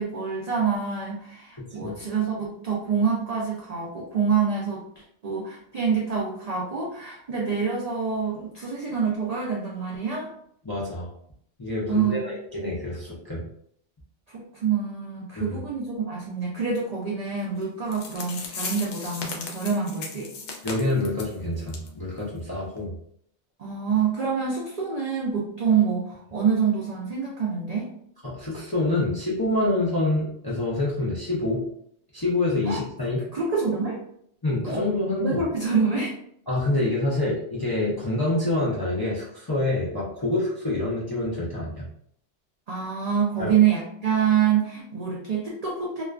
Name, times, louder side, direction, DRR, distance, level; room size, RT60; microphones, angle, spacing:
voice 1, 0.0-4.8 5.2-10.3 11.9-12.3 14.3-20.3 23.6-27.9 32.6-32.8 33.3-34.0 34.7-34.9 35.2-36.1 42.7-46.0, right 6 dB, 85° right, -3 dB, 0.3 m, -26 dB
voice 2, 1.6-1.9 10.6-11.1 11.6-13.4 15.4-15.6 20.6-22.9 28.2-31.6 32.1-33.3 34.4-35.4 36.5-41.9 43.4-43.5, left 2 dB, 35° left, -7 dB, 0.3 m, -26 dB
sound 1, 17.6-17.7 17.9-21.3 21.7-21.9 22.2-22.3 22.8-22.9, left 4 dB, 70° left, 0.8 m, -36 dB
2.4 x 2.2 x 2.3 m, 0.68 s
omnidirectional pair, 1.3 m